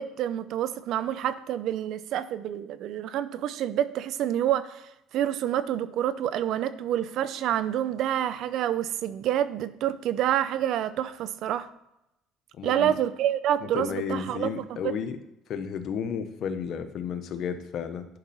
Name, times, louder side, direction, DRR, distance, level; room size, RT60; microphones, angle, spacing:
voice 1, 0.0-11.7 12.6-14.9, right 11 dB, 65° right, 14 dB, 0.6 m, -28 dB
voice 2, 12.5-12.9 13.6-15.2 15.5-18.1, left 7 dB, 60° left, 9 dB, 1.0 m, -32 dB
11.0 x 5.4 x 4.2 m, 0.87 s
supercardioid pair, 95°, 0 cm